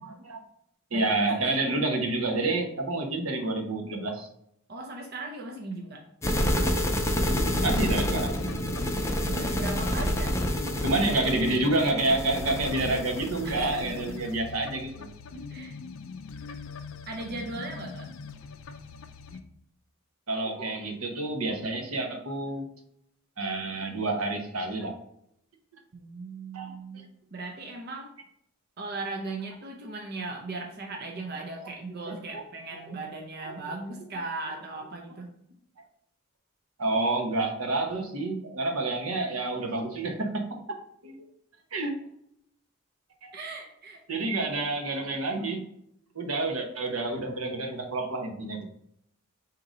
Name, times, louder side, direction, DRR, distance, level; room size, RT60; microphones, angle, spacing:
voice 1, 0.0-0.4 0.9-4.3 7.6-8.4 10.8-15.1 20.3-22.6 23.4-25.0 26.5-27.0 32.3-32.4 33.4-33.6 36.8-40.5 41.0-41.1 41.7-41.9 43.2-43.3 44.1-45.6 46.1-48.7, right 2 dB, 80° right, 2 dB, 0.9 m, -28 dB
voice 2, 4.7-6.1 8.9-10.8 13.4-14.1 14.6-14.7 15.3-15.7 17.1-18.1 25.9-27.0 27.3-28.1 28.8-35.3 43.3-44.0 44.3-44.5, right 3 dB, 50° right, 1 dB, 0.6 m, -38 dB
sound 1, 6.2-14.3, equal, 15° left, 0.5 m, -28 dB
sound 2, 7.0-19.4, left 5 dB, 65° left, 0.4 m, -42 dB
3.8 x 2.9 x 4.9 m, 0.75 s
head